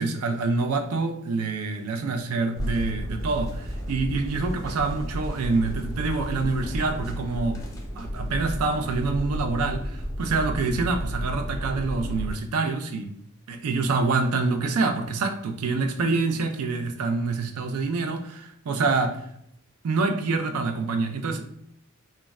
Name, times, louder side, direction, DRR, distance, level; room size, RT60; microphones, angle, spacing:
voice 1, 0.0-7.7 8.0-13.1 13.5-19.2 19.8-21.4, right 3 dB, 90° right, 0.4 m, -26 dB
sound 1, 2.6-12.3, equal, 15° left, 0.5 m, -32 dB
2.2 x 2.1 x 3.4 m
head